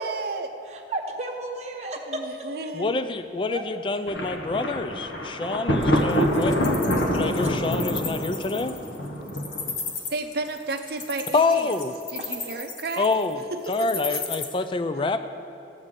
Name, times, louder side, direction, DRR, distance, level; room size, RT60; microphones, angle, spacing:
voice 1, 0.0-0.5 2.1-3.0 10.1-11.8 12.1-13.1 13.5-14.2, right 3 dB, 55° right, 6 dB, 0.6 m, -33 dB
voice 2, 0.7-2.2 3.5-3.6 7.4-7.6 12.2-12.4, right 2 dB, 35° right, 1 dB, 1.0 m, -33 dB
voice 3, 2.7-6.6 7.1-8.7 11.3-12.0 13.0-13.4 13.7-15.2, left 3 dB, 25° left, 10 dB, 0.3 m, -26 dB
Thunder, 4.1-9.9, equal, 70° left, 1.0 m, -26 dB
Wild animals, 5.8-14.4, left 5 dB, 45° left, 1.0 m, -35 dB
14.0 x 7.9 x 3.7 m, 2.8 s
head